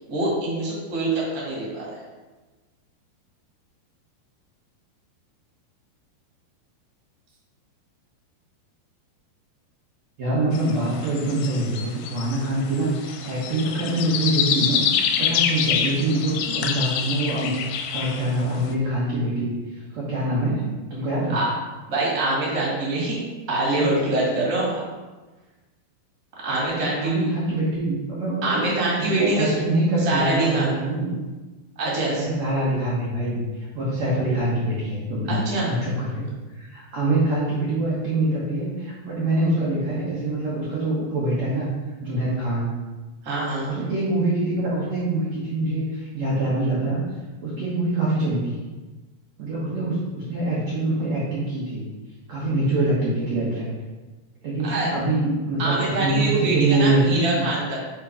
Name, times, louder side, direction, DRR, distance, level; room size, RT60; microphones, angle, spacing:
voice 1, 0.1-2.0 21.3-21.4 21.9-23.2 23.5-24.8 26.4-27.3 28.4-29.5 30.0-30.7 31.8-32.3 35.3-35.7 43.2-43.7 54.6-54.9 55.6-57.7, right 2 dB, 35° right, -5 dB, 1.6 m, -24 dB
voice 2, 10.2-20.6 20.9-21.4 26.7-28.6 29.0-31.1 32.2-36.3 36.5-41.7 42.0-42.7 43.6-47.0 47.4-48.6 49.4-51.9 52.3-53.7 54.4-57.4, right 2 dB, 65° right, -7 dB, 1.7 m, -24 dB
sound 1, 10.5-18.5, left 8 dB, 90° left, 2.8 m, -26 dB
7.8 x 3.7 x 4.9 m, 1.2 s
omnidirectional pair, 5.0 m